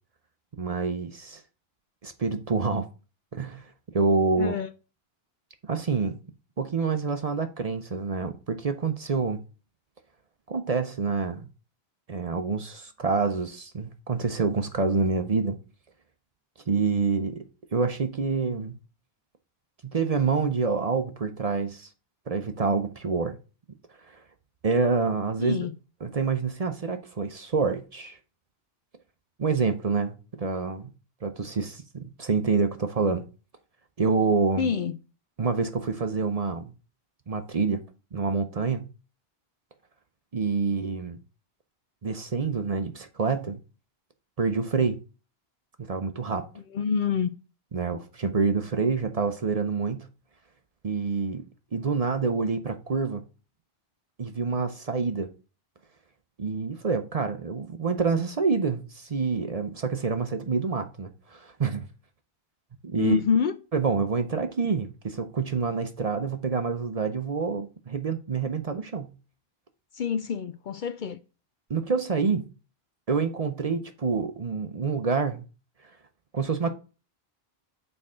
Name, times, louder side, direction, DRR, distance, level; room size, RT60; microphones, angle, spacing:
voice 1, 0.6-1.4 2.0-2.9 3.3-4.5 5.7-6.2 6.6-9.4 10.5-11.5 12.1-15.6 16.7-18.8 19.8-21.9 22.3-23.4 24.0-24.2 24.6-25.6 26.0-28.2 29.4-30.9 31.2-33.2 34.0-34.7 35.4-36.7 37.3-37.8 38.1-38.9 40.3-41.2 42.0-43.6 44.4-45.0 45.8-46.4 47.7-50.1 50.8-53.2 54.2-55.3 56.4-61.9 62.8-63.2 63.7-69.1 71.7-72.5 73.1-75.4 76.3-76.7, right 4 dB, 40° right, 0.7 m, -27 dB
voice 2, 4.4-4.7 25.4-25.7 34.6-35.0 46.7-47.3 63.0-63.6 69.9-71.2, left 7 dB, 60° left, 0.6 m, -26 dB
6.5 x 4.5 x 3.7 m
omnidirectional pair, 1.0 m